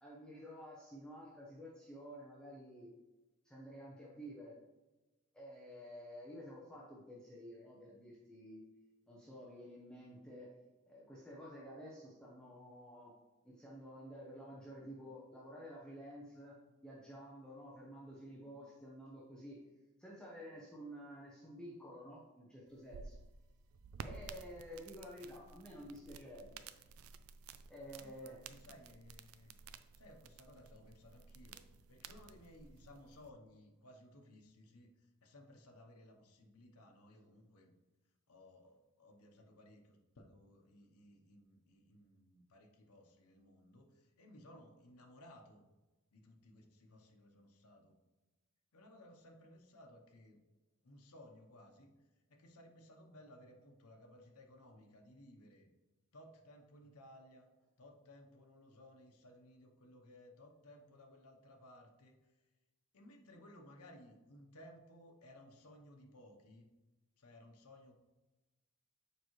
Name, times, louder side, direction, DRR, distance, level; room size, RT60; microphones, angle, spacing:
voice 1, 0.0-2.9 3.4-4.5 5.3-8.7 9.1-10.5 10.9-13.1 13.4-16.6 16.8-19.6 20.0-23.2 24.0-26.6 27.7-28.4, equal, 5° left, -5 dB, 0.7 m, -51 dB
sound 1, 22.7-33.3, right 5 dB, 75° right, 0.4 m, -54 dB
voice 2, 28.0-29.5 29.9-37.7 38.3-45.6 46.1-48.0 48.7-50.4 50.8-51.9 52.3-55.7 56.1-57.5 57.8-62.2 62.9-66.7 67.2-67.9, left 1 dB, 85° left, 4 dB, 0.9 m, -59 dB
6.8 x 4.7 x 3.1 m, 1.1 s
head